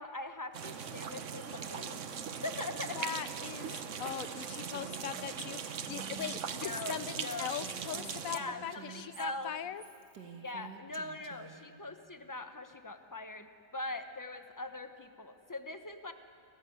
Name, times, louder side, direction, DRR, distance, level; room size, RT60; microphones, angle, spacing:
voice 1, 0.0-2.0 2.4-2.9 6.5-7.6 8.3-9.5 10.3-16.1, left 2 dB, 15° left, 7 dB, 0.8 m, -42 dB
sound 1, 0.5-8.4, right 7 dB, 50° right, 1.2 m, -40 dB
voice 2, 2.9-9.8, left 9 dB, 60° left, 13 dB, 1.1 m, -40 dB
Female speech woman speaking, 4.6-11.7, right 7 dB, 75° right, 2.1 m, -50 dB
29.5 x 14.5 x 9.5 m, 2.6 s
omnidirectional pair, 1.8 m